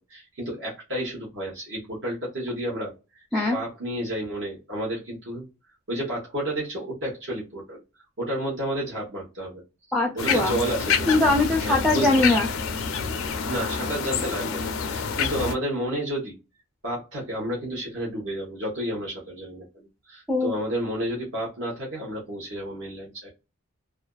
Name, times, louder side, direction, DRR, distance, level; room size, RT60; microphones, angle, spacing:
voice 1, 0.0-2.9 3.5-5.5 5.9-7.8 8.2-9.6 10.1-11.1 11.6-12.2 13.5-16.4 16.8-23.3, right 1 dB, 60° right, 0.9 m, -31 dB
voice 2, 9.9-10.5 11.1-12.5 20.3-20.5, left 2 dB, ahead, 0.4 m, -21 dB
sound 1, 10.2-15.5, left 6 dB, 75° left, 0.4 m, -27 dB
2.4 x 2.2 x 2.3 m
head